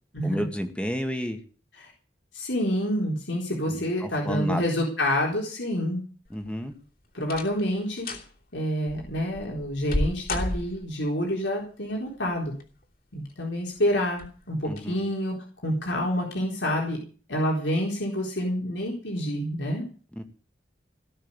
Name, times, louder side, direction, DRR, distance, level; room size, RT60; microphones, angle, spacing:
voice 1, 0.2-1.4 3.7-4.7 6.3-6.7 14.6-15.0 20.2-20.3, equal, 5° left, 6 dB, 1.9 m, -31 dB
voice 2, 2.3-6.0 7.1-8.1 8.5-12.5 13.1-15.3 15.6-17.0 17.3-19.8, equal, 85° left, -1 dB, 4.3 m, -28 dB
sound 1, 6.3-6.7 7.2-7.7 8.0-8.3 8.9-11.1 12.3-12.8 13.3-13.4 14.1-14.3 14.7-14.8, left 1 dB, 50° left, 3.0 m, -32 dB
18.0 x 6.5 x 9.8 m, 0.40 s
head